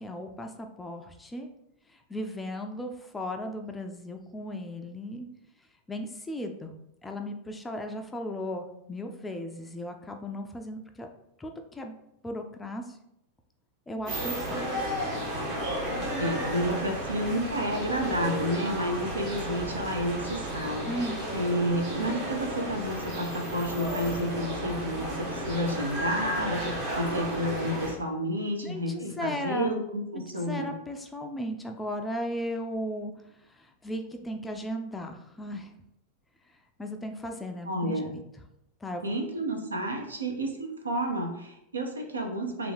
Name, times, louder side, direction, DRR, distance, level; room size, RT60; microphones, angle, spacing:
voice 1, 0.0-1.5 2.1-5.3 5.9-11.1 11.4-11.9 12.2-13.0 13.9-14.7 20.9-21.4 28.6-29.7 30.1-33.1 33.5-35.7 36.8-38.2 38.8-39.2, equal, 10° left, 4 dB, 0.4 m, -36 dB
sound 1, 14.1-27.9, equal, 50° right, 1.3 m, -33 dB
voice 2, 16.0-20.9 21.3-30.7 37.7-38.1 39.0-42.7, equal, 75° right, 2 dB, 0.6 m, -30 dB
3.3 x 2.4 x 3.4 m, 0.81 s
figure-of-eight pair, 90°, 0 cm